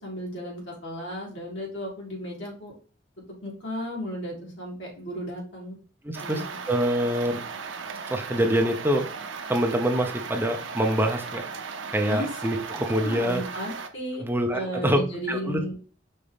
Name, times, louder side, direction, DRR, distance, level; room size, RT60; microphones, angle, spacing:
voice 1, 0.0-2.7 3.4-5.8 6.2-6.4 12.1-12.3 13.0-15.7, equal, 75° left, -2 dB, 2.2 m, -34 dB
voice 2, 6.0-6.4 6.7-7.4 8.1-9.1 9.5-11.4 11.9-13.4 14.2-15.0 15.3-15.6, right 1 dB, 10° right, 4 dB, 0.6 m, -25 dB
sound 1, 6.1-13.9, right 5 dB, 85° right, 0.6 m, -37 dB
5.3 x 3.0 x 3.3 m, 0.39 s
head